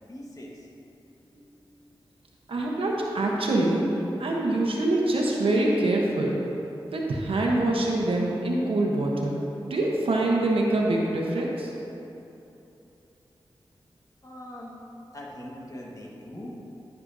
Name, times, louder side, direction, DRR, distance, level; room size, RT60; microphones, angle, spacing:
voice 1, 0.1-0.7 14.2-14.7 15.1-16.5, left 1 dB, 35° left, -3 dB, 1.4 m, -41 dB
voice 2, 2.5-3.8 4.2-6.4 6.9-11.7, right 2 dB, 75° right, -2 dB, 0.9 m, -25 dB
10.0 x 5.8 x 2.7 m, 2.9 s
cardioid pair, 45°, 9 cm